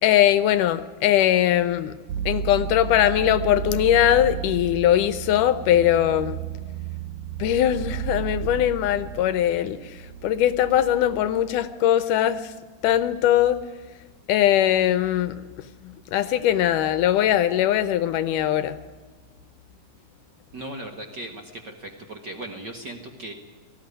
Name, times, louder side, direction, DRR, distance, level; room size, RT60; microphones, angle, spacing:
voice 1, 0.0-1.9 2.3-6.4 7.4-9.8 10.2-12.4 12.8-13.6 14.3-15.4 15.8-18.8, left 11 dB, 75° left, 14 dB, 2.2 m, -21 dB
sound 1, 2.1-11.7, right 9 dB, 75° right, 1.7 m, -33 dB
voice 2, 20.5-23.3, right 1 dB, 40° right, 4 dB, 1.7 m, -37 dB
19.0 x 14.5 x 9.8 m, 1.4 s
omnidirectional pair, 3.9 m